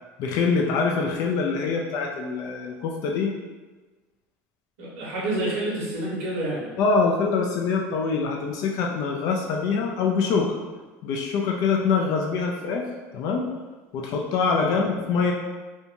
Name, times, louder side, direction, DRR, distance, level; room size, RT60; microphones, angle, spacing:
voice 1, 0.2-3.3 6.8-10.5 11.0-12.9 13.1-13.5 13.9-15.3, left 4 dB, 60° left, 0 dB, 0.4 m, -24 dB
voice 2, 4.8-6.7 14.6-14.9, right 1 dB, 85° right, -5 dB, 1.0 m, -29 dB
2.6 x 2.2 x 2.8 m, 1.3 s
supercardioid pair, 95°, 7 cm